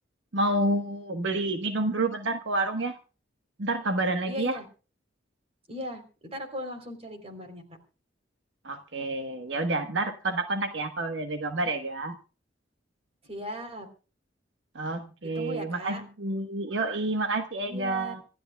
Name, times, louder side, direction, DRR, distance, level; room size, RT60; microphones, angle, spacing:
voice 1, 0.3-2.9 3.6-4.6 8.6-12.2 14.7-18.2, right 2 dB, 75° right, 6 dB, 1.3 m, -29 dB
voice 2, 4.3-4.7 5.7-7.7 13.3-13.9 15.3-16.0 17.6-18.1, equal, 35° right, 6 dB, 3.6 m, -38 dB
26.5 x 13.5 x 2.3 m, 0.35 s
head